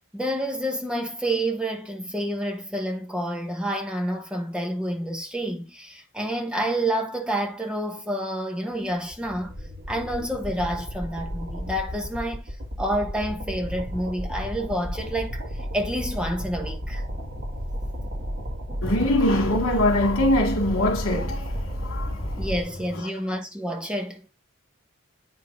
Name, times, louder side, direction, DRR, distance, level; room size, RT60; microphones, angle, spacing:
voice 1, 0.1-9.6 9.9-17.0 22.4-24.3, right 1 dB, 5° right, 1.1 m, -29 dB
sound 1, 8.9-22.6, equal, 45° right, 2.5 m, -32 dB
voice 2, 18.8-22.5, left 1 dB, 75° left, 2.1 m, -23 dB
8.8 x 5.2 x 2.7 m
head